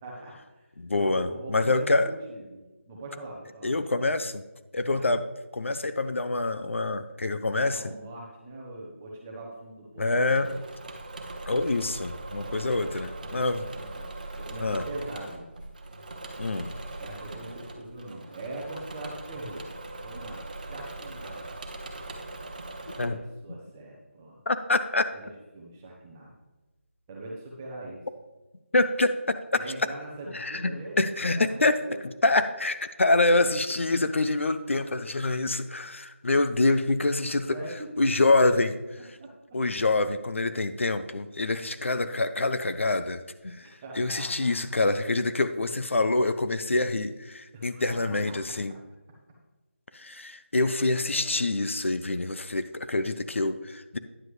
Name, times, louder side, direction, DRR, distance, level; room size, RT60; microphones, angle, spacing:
voice 1, 0.0-0.7 1.0-4.1 4.9-5.1 7.6-10.6 12.5-15.5 17.0-19.7 20.0-21.4 23.0-24.4 25.1-26.3 27.1-28.0 29.6-31.9 37.2-38.6 39.2-39.3 43.6-44.6 47.5-48.4 50.6-51.5, right 2 dB, 10° right, -2 dB, 0.8 m, -42 dB
voice 2, 0.8-2.1 3.6-4.4 4.7-5.3 5.5-7.8 10.0-10.5 11.5-13.6 14.6-14.8 16.4-16.7 23.0-23.2 24.5-25.1 28.7-29.4 30.3-31.8 32.2-37.6 38.0-38.7 39.5-48.7 49.9-54.0, left 2 dB, 70° left, 10 dB, 0.6 m, -26 dB
Engine / Mechanisms, 10.2-23.1, right 2 dB, 35° right, 0.9 m, -40 dB
9.8 x 7.5 x 3.2 m, 1.1 s
figure-of-eight pair, 175°, 7 cm